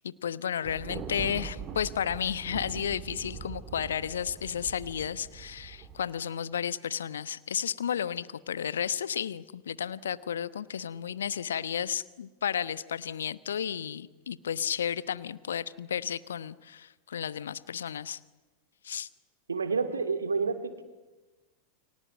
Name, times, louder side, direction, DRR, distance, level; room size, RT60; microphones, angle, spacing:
voice 1, 0.0-18.2 18.8-19.1, left 8 dB, 65° left, 17 dB, 1.1 m, -33 dB
Thunder, 0.7-6.0, right 6 dB, 30° right, 3.2 m, -42 dB
voice 2, 19.5-20.8, right 4 dB, 75° right, 8 dB, 2.7 m, -29 dB
30.0 x 24.5 x 8.2 m, 1.2 s
figure-of-eight pair, 90°, 0 cm